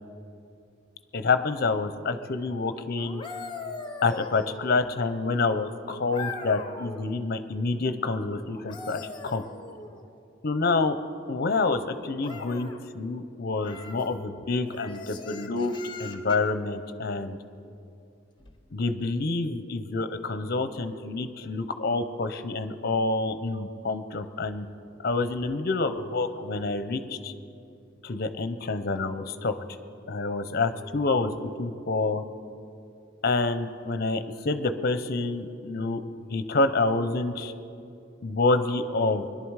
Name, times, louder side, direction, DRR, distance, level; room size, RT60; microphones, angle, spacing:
voice 1, 1.1-3.2 4.0-9.4 10.4-11.0 11.3-12.7 12.9-15.7 16.0-17.4 18.7-24.7 25.0-27.3 28.0-29.5 30.1-32.2 33.2-36.0 36.3-37.5 38.2-39.3, left 3 dB, 50° left, 10 dB, 0.7 m, -27 dB
sound 1, 3.0-5.0 6.1-7.1 8.5-10.1 12.2-12.8 13.6-14.1 14.7-16.5 18.4-18.6, left 4 dB, 25° left, 0.9 m, -40 dB
21.5 x 11.0 x 4.8 m, 2.6 s
head